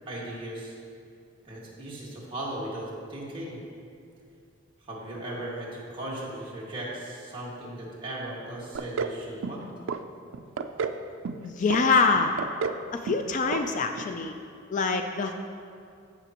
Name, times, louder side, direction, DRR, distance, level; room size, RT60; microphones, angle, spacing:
voice 1, 0.1-0.8 1.4-3.6 4.9-9.7, right 1 dB, 25° right, -6 dB, 1.8 m, -37 dB
sound 1, 8.7-9.2 9.4-10.0 10.3-11.0 11.2-11.8 12.1-12.8 13.1-13.3 13.5-13.6 14.0-14.1, right 5 dB, 75° right, 0.4 m, -31 dB
voice 2, 11.4-12.3 12.9-14.3 14.7-15.3, left 4 dB, 40° left, 6 dB, 0.4 m, -25 dB
14.5 x 5.9 x 3.0 m, 2.4 s
head